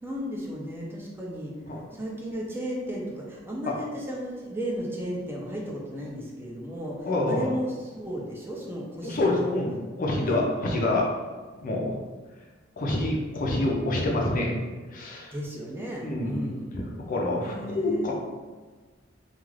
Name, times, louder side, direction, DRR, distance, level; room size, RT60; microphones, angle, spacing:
voice 1, 0.0-1.5 1.9-9.6 10.1-10.4 15.3-16.7 17.4-18.1, equal, 10° right, -3 dB, 0.4 m, -34 dB
voice 2, 7.1-7.5 9.0-11.1 11.6-11.9 12.8-14.5 14.9-15.3 16.0-16.8 17.1-18.1, left 1 dB, 45° left, -1 dB, 0.5 m, -27 dB
2.3 x 2.3 x 3.2 m, 1.4 s
head